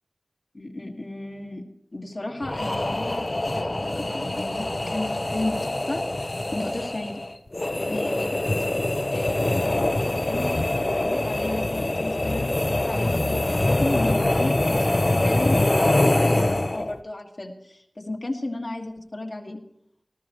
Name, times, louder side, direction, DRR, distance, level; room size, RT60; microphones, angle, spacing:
voice 1, 0.5-1.6 1.9-7.2 7.9-8.4 9.1-19.6, left 2 dB, 55° left, 0 dB, 1.7 m, -34 dB
sound 1, 2.4-17.0, left 1 dB, 40° left, 0.7 m, -24 dB
19.5 x 12.5 x 3.0 m, 0.75 s
wide cardioid pair, 50°, 0 cm